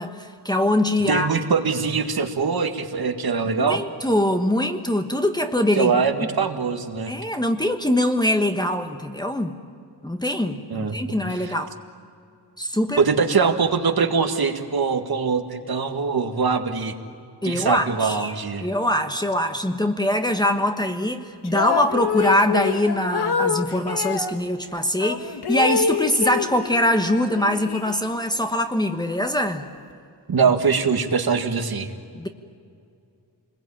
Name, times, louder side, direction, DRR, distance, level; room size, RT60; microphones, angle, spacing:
voice 1, 0.0-1.3 3.6-5.9 7.1-9.6 10.0-11.7 12.6-13.1 17.4-18.3 18.6-29.7 32.1-32.3, left 1 dB, 10° left, 5 dB, 1.2 m, -23 dB
voice 2, 1.1-3.8 5.8-7.1 10.7-11.0 11.3-11.5 13.0-17.0 17.4-18.7 30.3-31.9, right 5 dB, 65° right, 6 dB, 1.9 m, -22 dB
sound 1, 21.4-24.3 25.0-27.0 27.3-28.4, left 6 dB, 70° left, 1.4 m, -26 dB
27.5 x 21.0 x 8.8 m, 2.4 s
wide cardioid pair, 140°, 40 cm